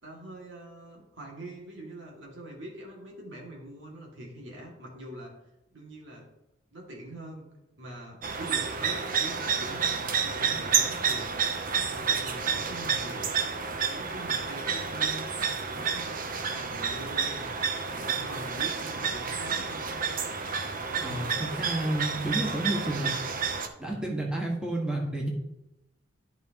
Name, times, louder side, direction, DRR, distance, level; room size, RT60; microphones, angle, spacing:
voice 1, 0.0-5.3 5.7-6.2 6.7-7.5 7.8-13.2 13.6-15.3 15.7-20.0 20.7-21.5, right 1 dB, 80° right, -1 dB, 2.2 m, -44 dB
sound 1, 8.2-23.7, right 6 dB, 45° right, 0.7 m, -30 dB
voice 2, 21.6-23.1 23.8-25.3, right 1 dB, 5° right, -3 dB, 1.5 m, -30 dB
12.5 x 5.1 x 2.9 m, 0.90 s
head